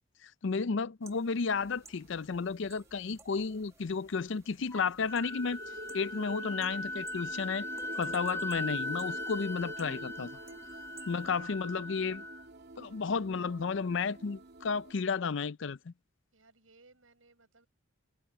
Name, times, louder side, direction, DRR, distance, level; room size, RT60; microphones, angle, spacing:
voice 1, 0.2-5.6 5.9-7.7 8.0-10.3 11.1-12.2 12.8-15.9, left 5 dB, 65° left, 0.5 m, -33 dB
sound 1, 1.0-11.3, right 3 dB, 15° right, 1.5 m, -57 dB
sound 2, 1.5-14.9, right 1 dB, 55° right, 2.6 m, -48 dB
Wind instrument woodwind instrument, 4.7-12.5, left 2 dB, 15° left, 2.7 m, -39 dB
voice 2, 16.3-17.7, right 3 dB, 80° right, 7.2 m, -62 dB
head